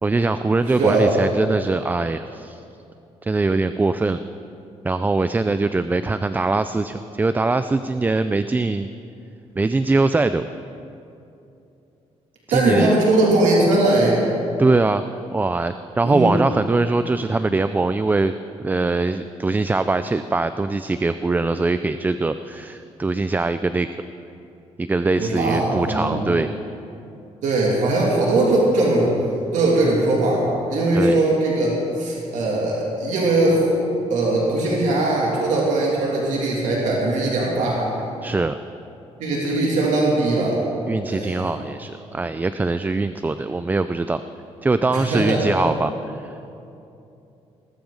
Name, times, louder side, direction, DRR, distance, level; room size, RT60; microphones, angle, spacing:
voice 1, 0.0-2.6 3.2-4.2 4.8-8.9 9.6-10.4 12.5-12.9 14.6-15.0 15.3-18.3 18.6-24.0 24.8-26.5 30.9-31.2 38.2-38.6 40.9-44.2 44.6-46.4, right 3 dB, 15° right, 11 dB, 0.3 m, -22 dB
voice 2, 0.8-1.1 12.5-14.2 16.0-16.3 25.2-26.3 27.4-29.1 29.5-33.7 34.1-37.9 39.2-40.6 41.1-41.5 44.9-45.5, right 2 dB, 90° right, -4 dB, 2.7 m, -20 dB
19.0 x 14.5 x 3.9 m, 2.7 s
cardioid pair, 125°, 12 cm